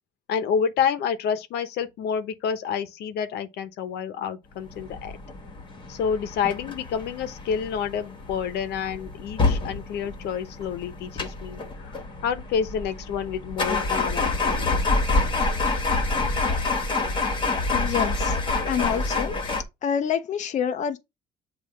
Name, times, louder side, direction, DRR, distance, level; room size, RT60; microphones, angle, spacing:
voice 1, 0.3-5.2 5.9-12.0 12.2-14.7, left 7 dB, 75° left, 1.0 m, -29 dB
sound 1, 4.6-19.6, left 3 dB, 30° left, 1.6 m, -27 dB
voice 2, 17.7-18.4 18.7-19.4 19.8-21.0, left 8 dB, 45° left, 0.7 m, -27 dB
7.5 x 2.7 x 5.2 m
cardioid pair, 110°, 17 cm